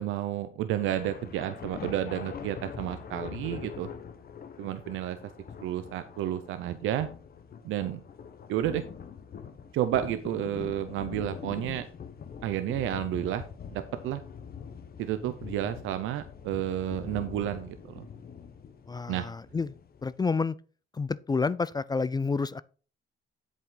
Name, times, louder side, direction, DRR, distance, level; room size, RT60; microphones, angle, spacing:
voice 1, 0.0-3.9 4.6-5.2 5.6-7.1 7.6-8.0 8.5-8.8 9.7-11.8 12.4-13.4 13.7-14.2 15.0-18.0 19.1-19.3, right 12 dB, 90° right, 0.7 m, -31 dB
sound 1, 0.8-20.4, left 7 dB, 50° left, 1.2 m, -43 dB
voice 2, 18.9-19.7 20.0-20.6 20.9-22.6, left 4 dB, 20° left, 0.4 m, -29 dB
8.1 x 7.6 x 3.9 m
cardioid pair, 90°, 20 cm